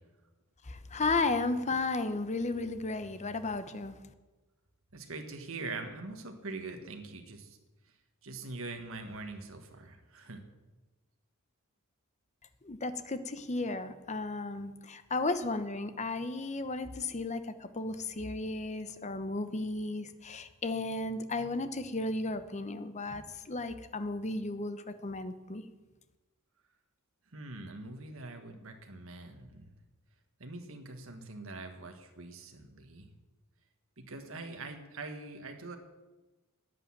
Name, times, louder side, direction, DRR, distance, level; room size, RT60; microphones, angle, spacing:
voice 1, 0.7-4.0 12.6-25.6, left 3 dB, 30° left, 11 dB, 0.9 m, -34 dB
voice 2, 4.9-7.6 8.2-10.4 27.3-29.8 30.4-33.1 34.0-35.8, right 3 dB, 65° right, 5 dB, 1.7 m, -43 dB
10.5 x 9.8 x 8.7 m, 1.2 s
head